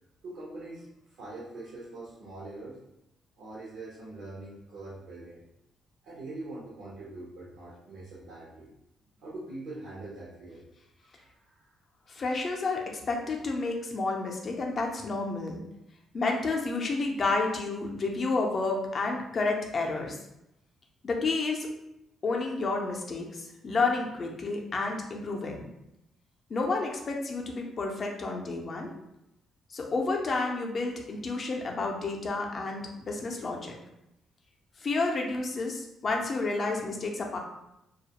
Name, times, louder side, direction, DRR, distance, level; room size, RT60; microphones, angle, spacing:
voice 1, 0.2-2.8 3.4-5.4 6.0-8.7 9.2-10.6 11.0-11.8, right 2 dB, 80° right, -7 dB, 0.6 m, -43 dB
voice 2, 12.1-15.6 16.1-20.2 21.0-21.7 22.2-25.7 26.5-28.9 29.7-33.7 34.8-37.4, left 3 dB, 45° left, 1 dB, 0.5 m, -30 dB
2.3 x 2.1 x 2.8 m, 0.87 s
cardioid pair, 90°, 0 cm